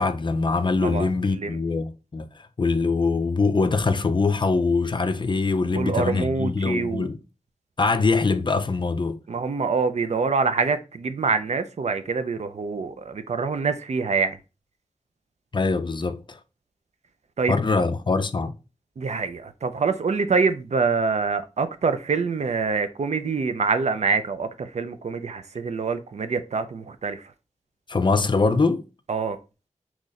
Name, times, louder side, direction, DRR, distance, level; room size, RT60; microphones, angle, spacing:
voice 1, 0.0-7.2 7.8-9.2 15.5-16.4 17.5-18.5 27.9-28.8, left 4 dB, 35° left, 0.4 m, -23 dB
voice 2, 0.8-1.6 5.7-7.1 9.3-14.4 17.4-17.5 19.0-27.3 29.1-29.4, right 4 dB, 60° right, 0.4 m, -25 dB
3.0 x 2.5 x 3.9 m
cardioid pair, 50°, 13 cm